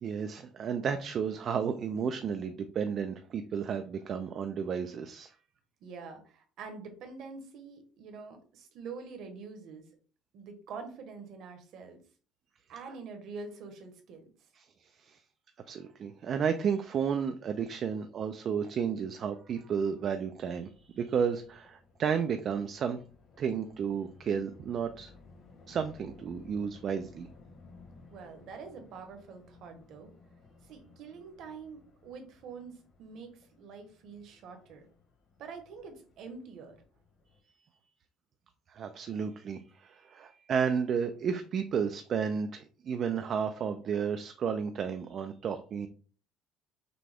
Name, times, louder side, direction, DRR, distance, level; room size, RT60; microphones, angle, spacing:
voice 1, 0.0-5.3 14.6-15.2 15.7-23.0 23.4-25.1 25.7-27.3 38.7-45.9, right 7 dB, 35° right, 7 dB, 0.3 m, -32 dB
voice 2, 5.8-9.9 10.3-12.0 12.7-14.3 28.1-30.1 30.7-32.7 33.0-33.3 33.6-34.8 35.4-36.8, right 5 dB, 50° right, 5 dB, 1.0 m, -45 dB
sound 1, 19.7-37.4, left 3 dB, 40° left, 1.1 m, -58 dB
6.0 x 2.2 x 3.4 m, 0.40 s
cardioid pair, 170°, 0 cm